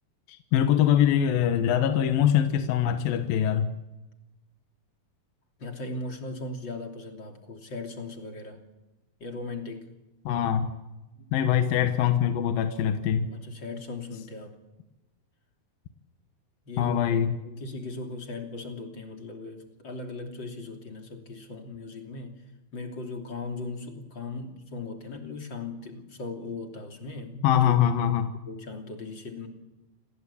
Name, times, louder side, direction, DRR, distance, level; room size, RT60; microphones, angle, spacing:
voice 1, 0.3-3.7 10.3-10.7 11.3-13.3 16.8-17.4 27.4-28.3, left 9 dB, 75° left, 8 dB, 2.9 m, -23 dB
voice 2, 5.6-8.6 9.2-9.9 11.2-11.3 13.3-14.6 16.7-17.2 17.4-22.4 22.7-28.2 28.5-29.5, left 3 dB, 30° left, 4 dB, 3.2 m, -38 dB
29.0 x 19.0 x 8.6 m, 1.0 s
omnidirectional pair, 4.3 m